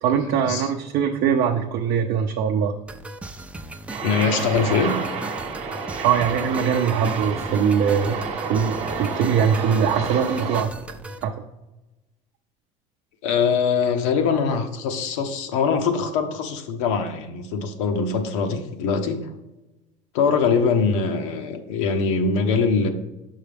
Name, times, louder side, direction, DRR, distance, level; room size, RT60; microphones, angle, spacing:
voice 1, 0.0-2.7 6.0-8.2 8.5-10.7 11.2-11.4, right 7 dB, 55° right, 2 dB, 0.6 m, -22 dB
sound 1, 2.9-11.2, right 2 dB, 10° right, 0.4 m, -38 dB
sound 2, 3.9-10.6, right 5 dB, 40° right, 1.0 m, -30 dB
voice 2, 4.0-5.0 13.2-19.2 20.1-22.9, left 5 dB, 85° left, 6 dB, 0.9 m, -22 dB
6.5 x 5.5 x 3.5 m, 1.0 s
supercardioid pair, 115°, 16 cm